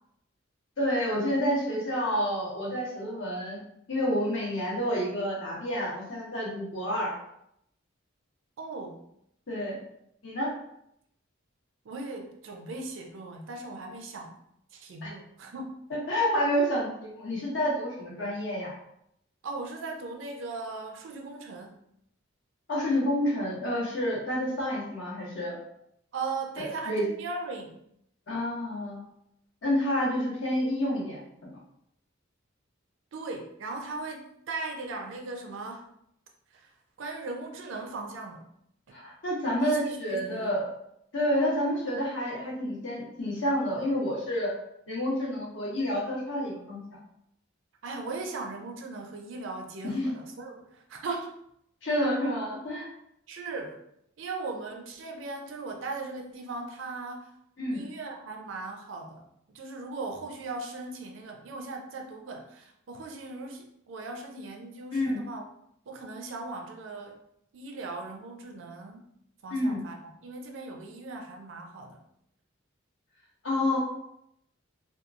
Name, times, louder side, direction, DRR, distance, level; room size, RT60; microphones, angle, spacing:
voice 1, 0.8-3.6 3.9-7.1 9.5-9.8 10.2-10.5 15.0-15.1 15.9-18.7 22.7-25.6 26.6-27.0 28.3-29.0 29.6-31.5 38.9-40.7 41.1-44.5 44.9-46.8 49.8-50.1 51.8-52.9 57.6-57.8 64.9-65.2 69.5-69.8 73.4-73.8, equal, 70° left, -4 dB, 1.0 m, -29 dB
voice 2, 8.6-9.0 11.8-14.4 14.7-15.8 19.4-21.8 26.1-27.8 33.1-35.9 36.5-36.7 37.0-38.5 39.6-40.6 47.8-51.4 53.3-53.8 54.2-57.3 57.7-59.2 59.5-65.4 65.9-67.2 67.5-69.1 69.4-72.0, right 3 dB, 70° right, 2 dB, 0.5 m, -38 dB
2.9 x 2.3 x 2.4 m, 0.75 s
head